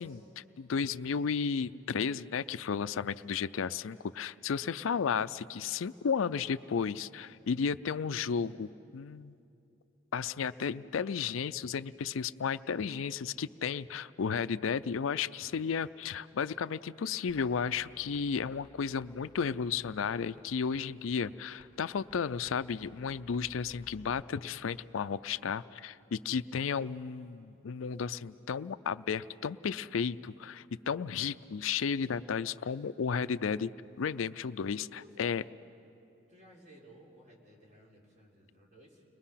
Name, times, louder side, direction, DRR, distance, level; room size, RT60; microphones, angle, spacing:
voice 1, 0.0-9.4 10.1-33.7 34.0-35.4, left 6 dB, 90° left, 15 dB, 0.5 m, -33 dB
sound 1, 17.3-24.2, left 2 dB, 25° left, 0.9 m, -60 dB
voice 2, 35.0-35.3 36.3-39.0, equal, 40° right, -3 dB, 4.2 m, -57 dB
30.0 x 21.5 x 5.8 m, 2.8 s
head